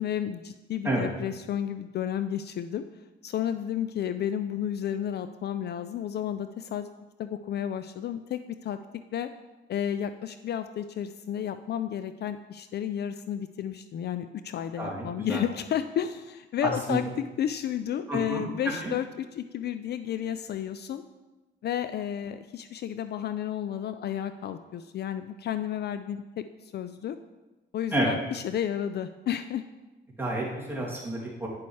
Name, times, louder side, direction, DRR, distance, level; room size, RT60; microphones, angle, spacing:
voice 1, 0.0-2.8 3.2-6.9 7.2-8.8 9.1-9.3 9.7-21.0 21.6-27.2 27.7-29.6, left 10 dB, 55° left, 11 dB, 0.4 m, -32 dB
voice 2, 14.8-15.4 16.6-17.0 18.1-18.9 27.9-28.1 30.2-31.5, right 1 dB, 10° right, -6 dB, 2.8 m, -30 dB
9.5 x 6.9 x 3.2 m, 1.1 s
cardioid pair, 90°, 20 cm